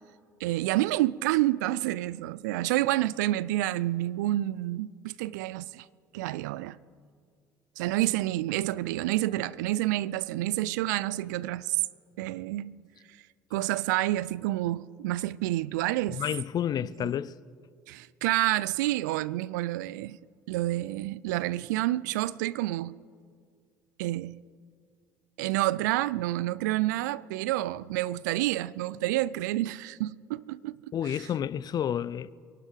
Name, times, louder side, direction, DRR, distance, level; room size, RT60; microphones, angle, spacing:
voice 1, 0.4-5.9 6.1-6.8 7.8-11.8 12.2-12.8 13.5-16.2 17.0-17.1 17.9-20.2 20.5-23.0 24.0-24.4 25.4-31.3, right 16 dB, 75° right, 0.4 m, -29 dB
voice 2, 16.1-17.3 30.9-32.3, left 9 dB, 45° left, 0.5 m, -30 dB
24.5 x 11.5 x 4.7 m
hypercardioid pair, 60°, 10 cm